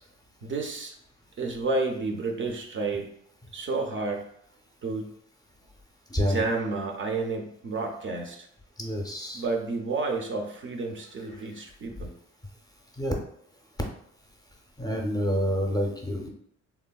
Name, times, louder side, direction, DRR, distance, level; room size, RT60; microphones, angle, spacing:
voice 1, 0.4-0.9 1.4-3.1 3.5-4.3 4.8-5.1 6.2-8.5 9.3-12.1, right 3 dB, 40° right, 3 dB, 0.4 m, -30 dB
voice 2, 6.1-6.4 8.8-9.4 13.0-13.1 14.8-16.3, equal, 15° left, 0 dB, 0.5 m, -27 dB
3.2 x 2.1 x 2.2 m, 0.72 s
cardioid pair, 90°, 30 cm